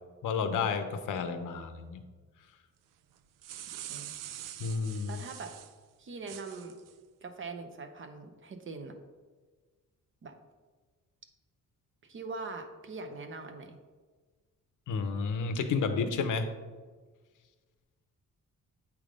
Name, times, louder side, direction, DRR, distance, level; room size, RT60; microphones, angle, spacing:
voice 1, 0.2-2.0 4.6-5.1 14.9-16.5, left 5 dB, 75° left, 8 dB, 0.7 m, -31 dB
sound 1, 3.2-5.7 6.3-6.9, right 11 dB, 80° right, 0.5 m, -44 dB
voice 2, 5.1-5.5 6.0-6.7 7.2-8.9 10.2-10.3 12.0-13.8, right 4 dB, 40° right, 6 dB, 0.7 m, -42 dB
8.5 x 3.5 x 5.1 m, 1.4 s
wide cardioid pair, 165°, 32 cm